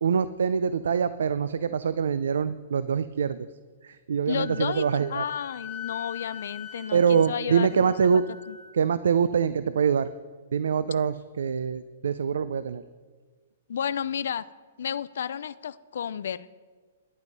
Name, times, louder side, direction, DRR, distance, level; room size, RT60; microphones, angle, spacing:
voice 1, 0.0-3.5 3.8-5.2 6.9-8.2 8.7-10.1 10.5-12.8, right 6 dB, 80° right, 14 dB, 0.4 m, -24 dB
voice 2, 4.3-4.8 5.1-7.9 8.5-8.6 13.7-14.4 14.8-16.5, left 8 dB, 65° left, 14 dB, 0.4 m, -32 dB
Wind instrument woodwind instrument, 4.3-8.7, left 7 dB, 5° right, 1.2 m, -43 dB
11.0 x 9.4 x 5.3 m, 1.5 s
hypercardioid pair, 175°, 0 cm